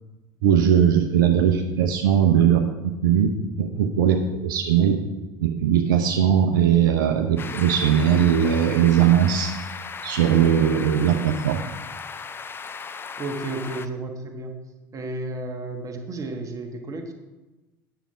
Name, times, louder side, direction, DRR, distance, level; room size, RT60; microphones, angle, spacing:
voice 1, 0.4-5.0 5.4-9.5 10.0-11.6, right 9 dB, 65° right, 4 dB, 0.7 m, -19 dB
sound 1, 7.4-13.9, left 5 dB, 20° left, 0.5 m, -36 dB
voice 2, 13.2-14.6 14.9-17.1, right 2 dB, 30° right, 3 dB, 1.5 m, -32 dB
9.1 x 6.9 x 4.9 m, 1.1 s
figure-of-eight pair, 70°, 12 cm